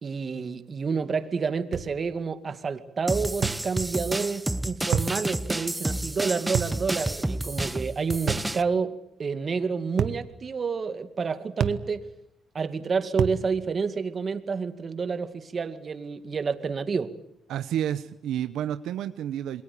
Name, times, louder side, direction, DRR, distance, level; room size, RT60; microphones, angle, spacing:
voice 1, 0.0-12.1 12.5-17.1, right 5 dB, 40° right, 10 dB, 2.2 m, -29 dB
sound 1, 1.7-1.9 3.4-3.7 4.9-5.2 6.5-6.8 8.3-8.5 10.0-10.2 11.6-11.9 13.2-13.4, right 8 dB, 65° right, 1.3 m, -27 dB
sound 2, 3.1-8.6, right 1 dB, 10° right, 0.9 m, -30 dB
voice 2, 17.5-19.6, right 10 dB, 80° right, 11 dB, 0.9 m, -30 dB
28.0 x 22.0 x 8.5 m, 0.77 s
cardioid pair, 90°, 0 cm